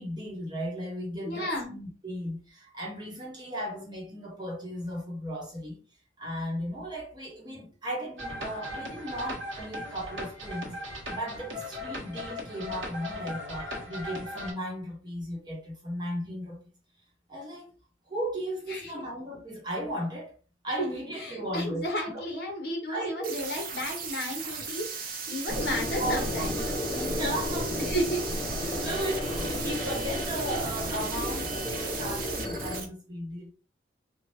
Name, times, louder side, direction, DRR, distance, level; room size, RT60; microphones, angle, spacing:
voice 1, 0.0-5.8 6.2-16.6 17.3-17.7 18.1-20.3 20.6-22.2 22.9-23.4 25.8-27.8 28.6-33.5, equal, 25° right, 1.2 m, -36 dB
voice 2, 1.2-1.8 18.7-18.9 20.8-20.9 21.1-24.9 25.3-26.6 27.8-28.2 28.8-28.9, equal, 55° left, 1.3 m, -33 dB
sound 1, 8.2-14.5, left 1 dB, 80° right, 1.4 m, -38 dB
sound 2, 23.2-32.9, right 5 dB, 50° right, 0.7 m, -37 dB
sound 3, 25.5-32.8, left 1 dB, 25° left, 1.6 m, -33 dB
3.2 x 2.4 x 4.2 m
head